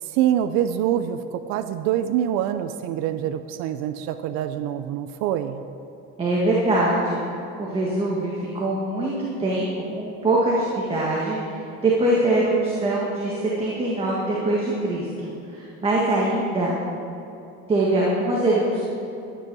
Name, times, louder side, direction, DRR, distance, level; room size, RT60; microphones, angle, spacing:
voice 1, 0.0-5.7, right 10 dB, 65° right, 9 dB, 0.6 m, -25 dB
voice 2, 6.2-7.2 7.6-9.1 9.4-9.7 10.0-16.8 17.7-18.8, right 2 dB, 20° right, -5 dB, 1.7 m, -23 dB
12.5 x 10.0 x 6.2 m, 2.9 s
cardioid pair, 165°, 30 cm